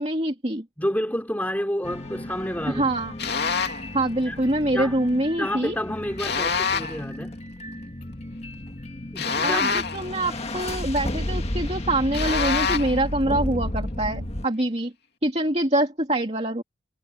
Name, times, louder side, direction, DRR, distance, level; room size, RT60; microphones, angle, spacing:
voice 1, 0.0-0.7 2.7-3.1 3.9-5.7 9.4-14.9 15.2-16.6, right 1 dB, 30° right, 2.7 m, -25 dB
voice 2, 0.8-2.9 4.2-4.4 4.7-5.0 5.4-7.3 9.1-9.7, equal, 10° left, 3.2 m, -29 dB
sound 1, 1.8-14.5, left 1 dB, 30° left, 1.7 m, -33 dB
sound 2, 3.2-3.9 6.2-7.0 9.2-10.1 12.1-13.0, left 5 dB, 55° left, 3.1 m, -26 dB
head